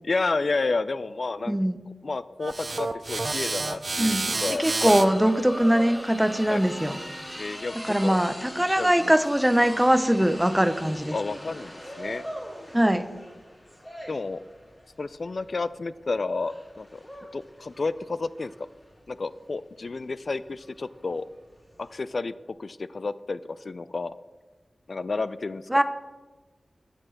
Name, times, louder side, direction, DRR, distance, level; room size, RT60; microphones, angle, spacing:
voice 1, 0.0-1.6 2.0-5.2 6.5-6.6 7.4-8.2 8.6-9.1 11.1-12.2 14.1-14.4 15.0-17.0 17.3-18.5 19.1-21.3 21.8-22.3 22.6-24.1 24.9-25.6, left 3 dB, 60° left, 16 dB, 0.3 m, -31 dB
voice 2, 1.5-1.8 4.0-7.0 7.9-11.1 12.7-13.0 25.7-25.8, equal, 5° right, 11 dB, 0.7 m, -22 dB
sound 1, 2.4-7.6, right 3 dB, 45° right, 0.6 m, -32 dB
sound 2, 3.7-22.0, equal, 25° left, 2.4 m, -41 dB
9.8 x 7.4 x 6.3 m, 1.2 s
wide cardioid pair, 90°, 0 cm